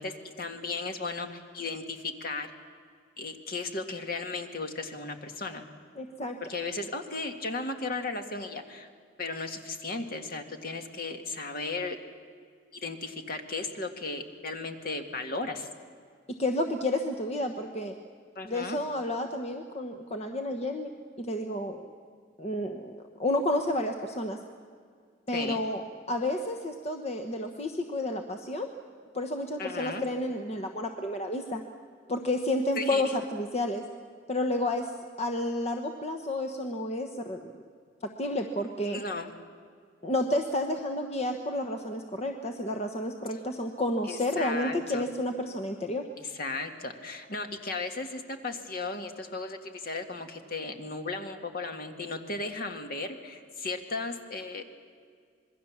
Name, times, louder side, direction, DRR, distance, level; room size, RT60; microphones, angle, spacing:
voice 1, 0.0-2.5 3.2-5.7 6.4-8.9 9.2-12.0 12.8-15.7 18.4-18.8 25.3-25.6 29.6-30.0 32.8-33.1 38.8-39.3 44.0-45.0 46.2-54.6, left 3 dB, 55° left, 5 dB, 1.9 m, -35 dB
voice 2, 6.0-6.4 16.4-17.9 18.4-20.9 21.2-21.9 22.4-24.4 25.3-25.8 26.1-28.7 29.1-31.6 32.1-33.8 34.3-34.9 35.2-37.5 38.0-39.0 40.0-46.0, left 1 dB, 35° left, 5 dB, 1.1 m, -31 dB
26.5 x 21.5 x 7.3 m, 2.1 s
head